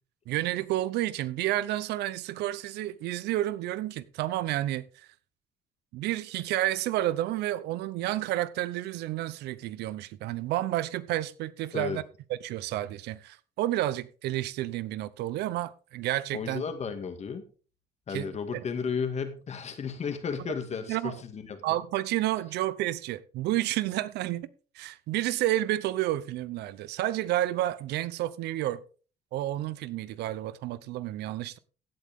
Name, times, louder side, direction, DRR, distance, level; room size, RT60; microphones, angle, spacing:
voice 1, 0.3-5.1 5.9-12.0 12.3-16.6 18.1-18.6 20.9-21.2 21.6-24.5 24.7-28.8 29.3-31.6, right 14 dB, 80° right, 0.7 m, -30 dB
voice 2, 16.3-17.5 18.1-21.6, left 6 dB, 40° left, 2.0 m, -33 dB
16.0 x 8.2 x 3.6 m
cardioid pair, 110°, 17 cm